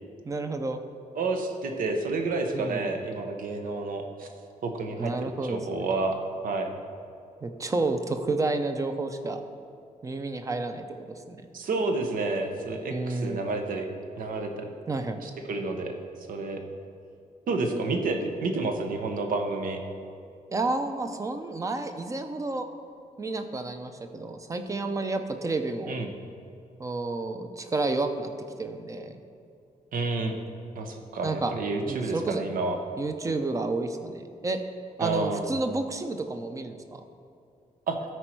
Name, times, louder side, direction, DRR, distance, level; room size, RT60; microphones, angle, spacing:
voice 1, 0.2-0.8 2.5-2.9 5.0-5.8 7.4-9.4 10.0-10.9 11.3-11.4 12.9-13.4 14.9-15.2 20.5-22.7 23.2-25.9 26.8-28.3 28.6-29.2 31.2-31.5 31.8-32.4 33.0-34.6 35.0-37.0, right 3 dB, 25° right, 7 dB, 0.5 m, -30 dB
voice 2, 1.1-4.3 4.6-6.7 11.5-13.9 14.2-14.7 15.2-15.9 16.3-16.6 17.5-19.8 25.9-26.1 29.9-30.4 30.7-32.8 35.0-35.4 37.9-38.0, right 3 dB, 85° right, 5 dB, 1.0 m, -30 dB
12.5 x 4.5 x 4.5 m, 2.6 s
wide cardioid pair, 165°, 14 cm